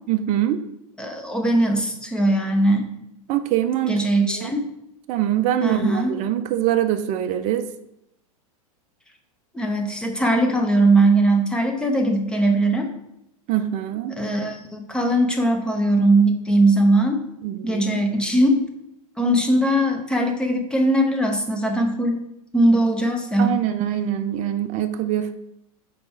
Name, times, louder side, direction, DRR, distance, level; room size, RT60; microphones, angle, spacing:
voice 1, 0.1-0.6 3.3-4.0 4.3-4.5 5.1-7.7 13.5-14.2 17.4-18.0 23.4-25.3, right 11 dB, 40° right, 8 dB, 0.5 m, -23 dB
voice 2, 1.0-2.8 3.9-4.7 5.6-6.2 9.5-12.9 14.2-17.3 17.6-18.6 19.2-22.2 22.5-23.6, right 1 dB, 5° left, 3 dB, 0.8 m, -20 dB
5.2 x 4.2 x 4.6 m, 0.81 s
hypercardioid pair, 105°, 19 cm